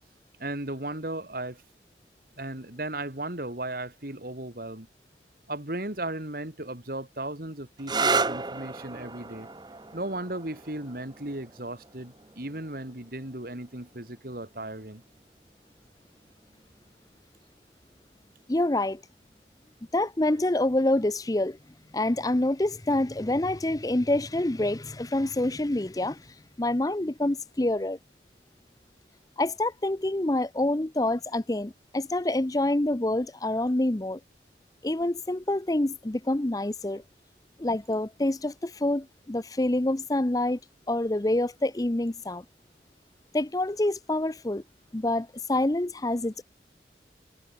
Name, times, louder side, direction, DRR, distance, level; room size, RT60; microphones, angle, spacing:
voice 1, 0.4-1.6 2.4-4.9 5.5-9.5 9.9-15.0, right 1 dB, 55° right, 2.8 m, -36 dB
sound 1, 7.8-15.2 16.2-16.8 20.3-20.6, right 4 dB, 25° right, 1.1 m, -34 dB
voice 2, 18.5-19.0 19.9-21.6 21.9-28.0 29.4-34.2 34.8-37.0 37.6-40.6 40.9-42.4 43.3-44.6 44.9-46.4, left 1 dB, 20° left, 0.6 m, -27 dB
head